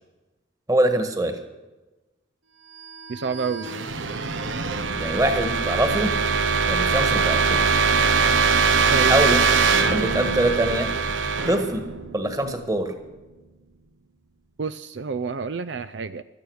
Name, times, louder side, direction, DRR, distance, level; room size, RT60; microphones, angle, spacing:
voice 1, 0.7-1.4 4.9-6.1 6.7-7.8 9.1-9.4 9.9-10.9 11.5-11.9 12.1-12.9, right 1 dB, 20° right, 7 dB, 1.6 m, -23 dB
sound 1, 2.9-12.7, right 5 dB, 85° right, 1.1 m, -22 dB
voice 2, 3.1-3.7 8.9-9.3 14.6-16.2, right 5 dB, 70° right, 14 dB, 0.5 m, -28 dB
16.5 x 12.5 x 6.4 m, 1.1 s
head